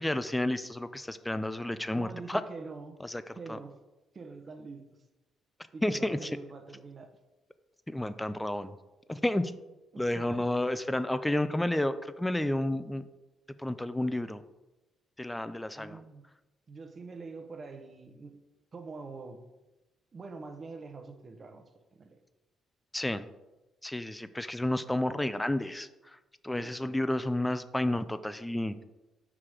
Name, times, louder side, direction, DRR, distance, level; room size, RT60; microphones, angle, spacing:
voice 1, 0.0-2.4 3.0-3.2 3.5-3.6 5.8-6.3 7.9-8.7 9.1-9.5 10.0-13.0 13.6-14.4 15.2-16.0 22.9-23.2 23.8-25.9 26.4-28.8, left 1 dB, 10° left, 12 dB, 0.4 m, -31 dB
voice 2, 1.9-3.0 3.4-3.7 4.1-4.9 5.7-7.1 9.1-9.3 9.9-10.5 15.8-16.2 16.7-18.4 18.7-19.4 20.1-22.2 26.6-26.9, right 4 dB, 40° right, 7 dB, 0.9 m, -45 dB
5.8 x 4.8 x 4.9 m, 1.0 s
cardioid pair, 90°, 0 cm